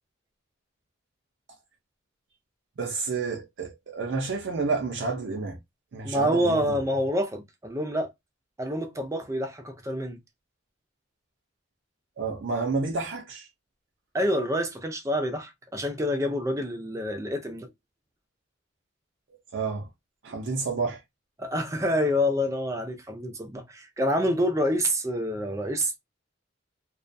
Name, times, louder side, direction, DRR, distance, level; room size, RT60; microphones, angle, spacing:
voice 1, 2.8-5.6 5.9-6.8 12.2-13.5 19.5-19.9 20.2-21.0, right 4 dB, 65° right, 0.5 m, -30 dB
voice 2, 6.0-8.1 8.6-10.2 14.1-17.7 21.4-26.0, equal, 15° right, 0.4 m, -27 dB
2.3 x 2.2 x 2.5 m
head